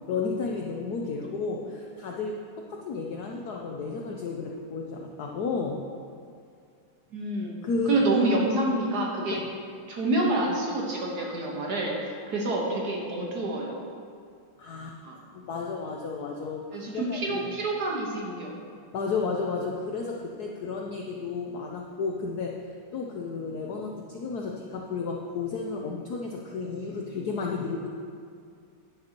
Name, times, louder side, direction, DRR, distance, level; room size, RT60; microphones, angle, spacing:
voice 1, 0.1-5.8 7.6-8.2 9.3-9.5 14.6-14.9 15.3-17.5 18.9-22.6 22.9-27.9, left 4 dB, 70° left, 0 dB, 0.9 m, -32 dB
voice 2, 7.1-7.6 7.9-9.4 9.9-13.8 15.0-15.2 16.7-18.5, right 2 dB, 55° right, -2 dB, 1.6 m, -27 dB
10.5 x 10.5 x 2.9 m, 2.3 s
omnidirectional pair, 2.4 m